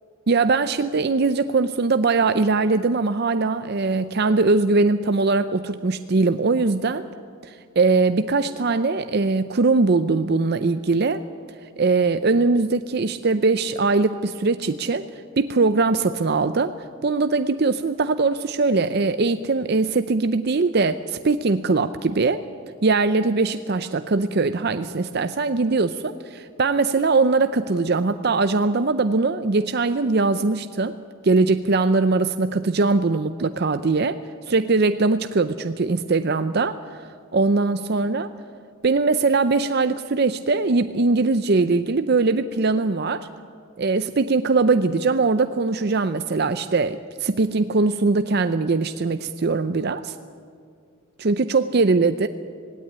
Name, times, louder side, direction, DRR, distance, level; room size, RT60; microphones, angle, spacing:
voice 1, 0.3-7.0 7.4-11.2 11.8-15.1 15.4-16.8 17.0-22.4 22.8-31.0 31.2-34.2 34.5-36.8 37.3-38.3 38.8-43.3 43.8-50.2 51.2-52.3, right 3 dB, 50° right, 10 dB, 0.6 m, -21 dB
18.0 x 17.0 x 10.0 m, 2.2 s
head